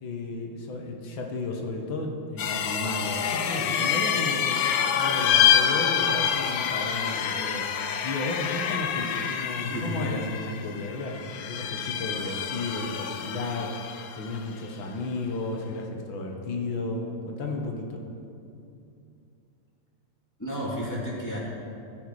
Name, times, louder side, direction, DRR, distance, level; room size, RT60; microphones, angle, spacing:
voice 1, 0.0-18.0, left 2 dB, 90° left, 1 dB, 2.0 m, -33 dB
sound 1, 2.4-14.4, left 8 dB, 65° left, 0.9 m, -27 dB
voice 2, 9.6-10.0 20.4-21.4, equal, 10° left, -7 dB, 2.5 m, -32 dB
17.0 x 5.7 x 4.7 m, 2.6 s
omnidirectional pair, 2.1 m